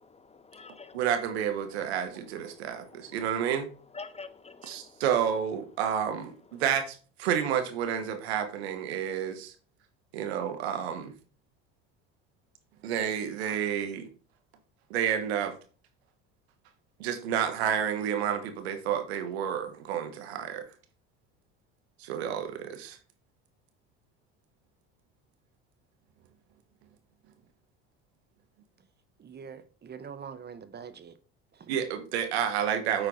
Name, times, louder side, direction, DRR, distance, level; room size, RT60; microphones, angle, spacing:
voice 1, 0.0-1.0 2.5-3.2 3.9-5.0, left 4 dB, 20° left, 0.6 m, -47 dB
voice 2, 0.9-3.7 4.6-9.5 10.1-11.1 12.8-14.1 14.9-15.6 17.0-20.6 22.0-23.0 31.7-33.1, right 9 dB, 90° right, 1.4 m, -30 dB
voice 3, 29.2-31.1 31.5-31.7, right 6 dB, 30° right, 1.0 m, -44 dB
8.4 x 4.6 x 4.0 m
supercardioid pair, 80°, 31 cm